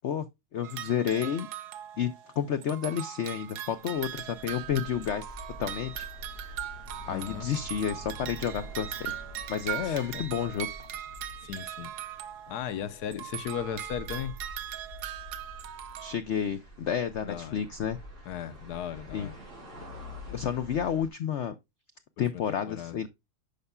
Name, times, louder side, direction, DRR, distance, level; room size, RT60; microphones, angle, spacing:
voice 1, 0.5-1.5 2.0-5.3 5.6-6.1 6.4-6.5 7.1-9.1 9.5-10.7 16.0-18.0 19.1-19.3 20.3-21.5 22.2-23.1, left 8 dB, 90° left, 0.6 m, -30 dB
sound 1, 0.6-2.4 2.6-12.8 13.1-16.2, right 11 dB, 70° right, 1.2 m, -40 dB
sound 2, 3.6-21.1, left 1 dB, 40° right, 3.6 m, -47 dB
voice 2, 7.1-7.5 9.8-10.2 11.4-11.9 12.5-14.3 17.2-17.6 18.3-19.4 22.3-22.4 22.7-23.0, left 9 dB, 65° left, 1.2 m, -36 dB
10.5 x 5.4 x 2.2 m
omnidirectional pair, 2.0 m